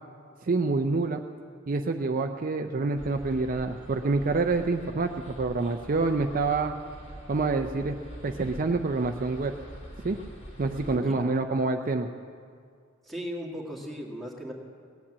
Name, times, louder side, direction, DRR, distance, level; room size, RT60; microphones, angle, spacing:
voice 1, 0.5-1.2 1.7-6.7 7.3-9.5 10.0-10.2 10.6-12.1, right 3 dB, 45° right, 5 dB, 0.5 m, -27 dB
sound 1, 3.0-11.0, equal, 35° left, 2.5 m, -44 dB
voice 2, 10.9-11.3 13.0-14.5, equal, ahead, -2 dB, 1.9 m, -37 dB
18.5 x 8.8 x 7.4 m, 2.2 s
head